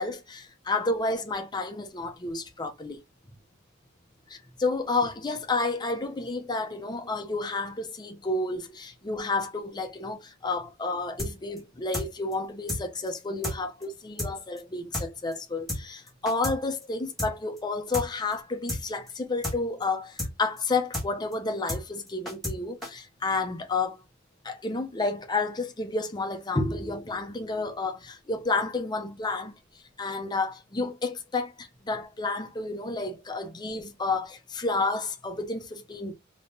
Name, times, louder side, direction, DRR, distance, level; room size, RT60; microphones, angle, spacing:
voice 1, 0.0-3.0 4.3-24.0 24.4-29.5 30.0-36.1, left 3 dB, 20° left, 0.6 m, -30 dB
sound 1, 11.2-11.3 11.6-11.7 11.9-12.1 12.3-12.4 12.7-12.8 13.1-13.2 13.4-13.6 13.8-13.9 14.2-14.3 14.6-14.7 14.9-15.1 15.3-15.4 15.7-15.8 16.1-16.6 16.8-16.9 17.2-17.3 17.6-17.7 17.9-18.1 18.3-18.4 18.7-18.8 19.1-19.2 19.4-19.6 19.8-19.9 20.2-20.3 20.6-20.7 20.9-21.1 21.3-21.4 21.7-21.8 22.1-22.6 22.8-22.9, left 1 dB, ahead, 1.6 m, -31 dB
3.5 x 2.9 x 2.6 m
head